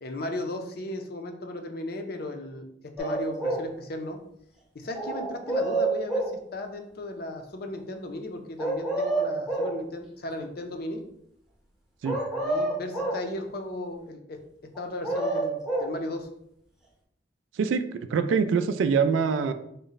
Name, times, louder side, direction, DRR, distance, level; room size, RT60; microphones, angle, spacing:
voice 1, 0.0-2.7 3.0-4.2 4.7-6.2 6.5-11.0 12.4-14.4 14.8-16.3, left 1 dB, 55° left, 5 dB, 0.5 m, -36 dB
sound 1, 3.0-3.7 4.9-6.4 8.6-9.8 12.1-13.3 14.8-15.9, right 2 dB, 5° right, 0.7 m, -28 dB
voice 2, 17.5-19.5, right 5 dB, 85° right, 10 dB, 0.3 m, -24 dB
4.0 x 2.1 x 3.9 m, 0.74 s
head